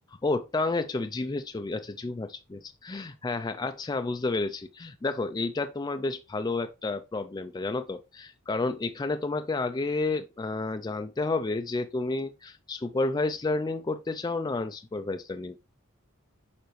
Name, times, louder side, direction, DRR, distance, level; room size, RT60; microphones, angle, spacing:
voice 1, 0.1-15.6, left 3 dB, 20° left, 0.3 m, -31 dB
6.8 x 5.1 x 3.1 m
head